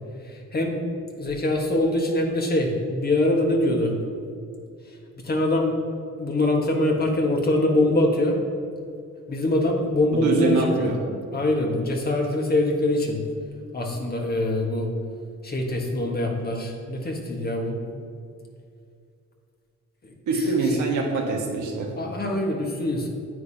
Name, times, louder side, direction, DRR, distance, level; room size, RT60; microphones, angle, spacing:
voice 1, 0.2-0.8 1.2-3.9 5.2-5.7 6.2-8.4 9.3-10.9 11.3-13.2 13.7-14.9 15.4-17.8 20.0-20.8 22.0-23.1, left 1 dB, 30° left, 1 dB, 1.4 m, -24 dB
voice 2, 10.2-11.0 20.3-21.9, right 3 dB, 75° right, 0 dB, 1.5 m, -24 dB
9.5 x 8.2 x 2.8 m, 2.3 s
cardioid pair, 90°, 30 cm